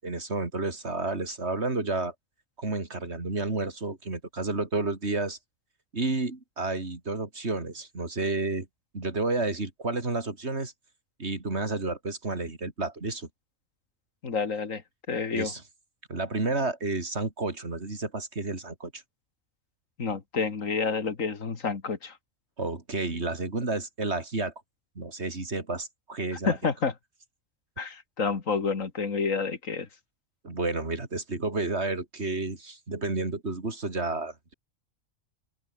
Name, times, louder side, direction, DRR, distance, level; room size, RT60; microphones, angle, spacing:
voice 1, 0.0-2.1 2.6-5.4 5.9-8.7 8.9-10.7 11.2-13.3 15.3-15.6 16.1-19.0 22.6-24.5 25.0-26.7 30.4-34.5, right 3 dB, 55° right, 3.5 m, -31 dB
voice 2, 14.2-14.8 15.1-15.5 20.0-22.2 26.4-26.9 27.8-29.9, left 5 dB, 85° left, 2.5 m, -29 dB
omnidirectional pair, 1.3 m